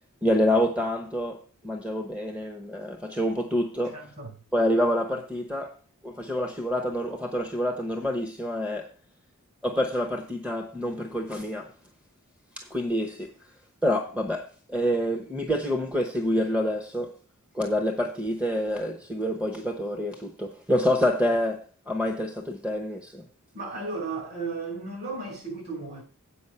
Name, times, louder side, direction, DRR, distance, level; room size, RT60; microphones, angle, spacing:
voice 1, 0.2-4.0 4.5-8.9 9.6-11.7 12.6-13.3 13.8-17.1 17.5-23.2, equal, 5° right, 0.9 m, -27 dB
voice 2, 3.9-4.3 23.5-26.0, right 3 dB, 45° right, 6.1 m, -34 dB
8.6 x 5.0 x 6.6 m
head